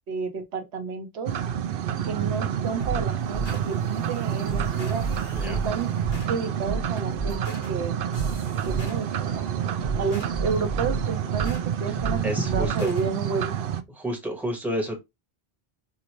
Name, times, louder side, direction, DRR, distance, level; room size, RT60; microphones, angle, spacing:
voice 1, 0.1-1.3 2.0-5.1 5.4-5.9 6.2-8.0 8.6-9.5 10.0-13.5, right 5 dB, 85° right, 1.1 m, -31 dB
sound 1, 1.3-13.8, right 9 dB, 65° right, 0.7 m, -28 dB
sound 2, 2.8-13.1, right 3 dB, 65° left, 2.2 m, -34 dB
voice 2, 12.2-12.9 13.9-15.0, equal, ahead, 1.3 m, -30 dB
4.9 x 2.6 x 3.0 m
omnidirectional pair, 1.1 m